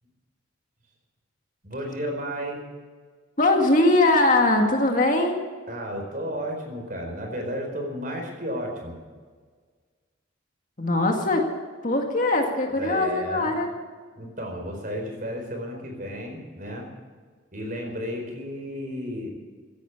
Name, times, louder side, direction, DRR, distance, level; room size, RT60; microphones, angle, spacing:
voice 1, 1.6-2.6 5.7-9.0 12.7-13.6 14.1-16.9 17.5-19.3, equal, 45° right, 2 dB, 4.5 m, -33 dB
voice 2, 3.4-5.4 10.8-11.5 11.8-13.7 17.6-17.7, left 2 dB, 40° left, 2 dB, 2.1 m, -21 dB
16.0 x 10.5 x 8.5 m, 1.5 s
head